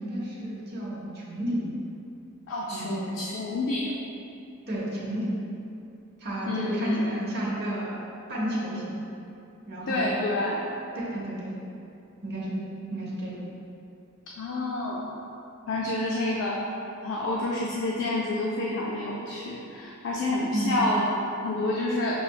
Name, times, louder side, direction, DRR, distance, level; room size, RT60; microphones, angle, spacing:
voice 1, 0.0-1.7 2.7-3.2 4.7-5.4 6.2-8.0 8.3-9.0 9.7-10.2 11.0-11.5 12.2-12.6 12.9-13.5 20.5-20.8, right 1 dB, 50° right, -6 dB, 0.9 m, -31 dB
voice 2, 2.5-3.9 6.5-7.1 9.9-10.6 14.4-15.1 15.7-16.7 17.0-22.2, left 2 dB, 60° left, -3 dB, 0.4 m, -28 dB
6.3 x 2.5 x 2.2 m, 2.7 s
head